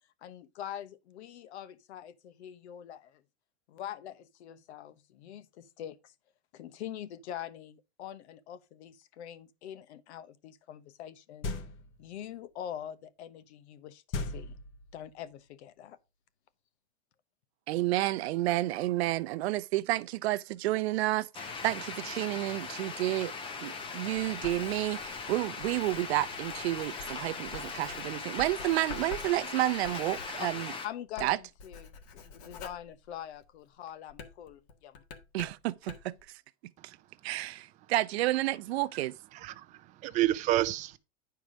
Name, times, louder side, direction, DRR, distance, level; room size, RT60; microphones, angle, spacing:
voice 1, 0.2-3.2 3.7-6.1 6.5-11.6 12.0-14.6 14.9-16.0 30.8-32.0 32.2-35.0, left 10 dB, 70° left, 1.1 m, -44 dB
sound 1, 11.4-12.1 14.1-15.1, left 3 dB, 35° left, 1.0 m, -37 dB
voice 2, 17.7-23.3 23.6-30.7 31.2-31.4 35.3-36.1 36.8-37.0 37.2-39.1, right 16 dB, 65° right, 0.7 m, -30 dB
sound 2, 21.3-30.9, left 4 dB, 15° left, 0.7 m, -40 dB
Writing, 24.1-30.8 31.1-33.6 34.1-36.2, left 5 dB, 50° left, 1.6 m, -48 dB
voice 3, 39.3-41.0, right 14 dB, 20° right, 0.5 m, -29 dB
10.0 x 4.7 x 5.0 m
supercardioid pair, 155°, 35 cm